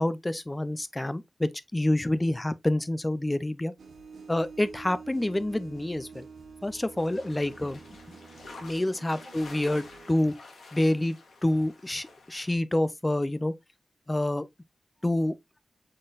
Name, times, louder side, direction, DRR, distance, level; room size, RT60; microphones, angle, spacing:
voice 1, 0.0-3.7 4.3-6.3 6.6-7.8 8.6-10.3 10.7-11.2 11.4-13.5 14.1-14.5 15.0-15.3, left 1 dB, 15° left, 0.4 m, -27 dB
sound 1, 3.8-10.1, right 4 dB, 90° right, 0.9 m, -47 dB
sound 2, 7.0-12.5, left 3 dB, 80° left, 1.3 m, -49 dB
3.9 x 3.8 x 2.3 m
wide cardioid pair, 105°, 0 cm